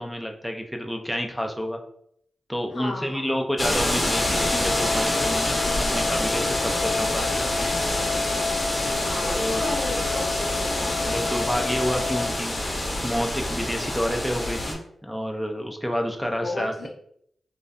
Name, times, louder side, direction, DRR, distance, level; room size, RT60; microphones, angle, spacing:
voice 1, 0.0-1.8 2.5-7.5 9.2-9.6 10.8-16.7, equal, 5° right, 3 dB, 0.4 m, -29 dB
voice 2, 2.7-3.3 8.5-11.3 16.4-16.9, left 2 dB, 80° left, -2 dB, 0.7 m, -34 dB
sound 1, 3.6-14.7, left 1 dB, 35° left, 0.7 m, -26 dB
sound 2, 4.1-12.3, left 5 dB, 80° right, 0.9 m, -31 dB
2.5 x 2.1 x 2.3 m, 0.69 s
cardioid pair, 55°, 0 cm